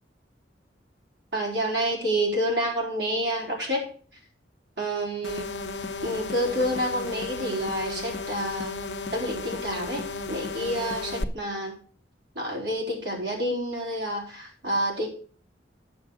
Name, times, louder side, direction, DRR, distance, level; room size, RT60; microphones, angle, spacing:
voice 1, 1.3-3.9 4.8-5.5 6.0-8.7 9.1-11.7 12.3-15.1, equal, 80° right, -1 dB, 4.3 m, -28 dB
sound 1, 5.2-11.2, left 3 dB, 70° left, 0.9 m, -34 dB
9.4 x 6.8 x 6.4 m, 0.43 s
head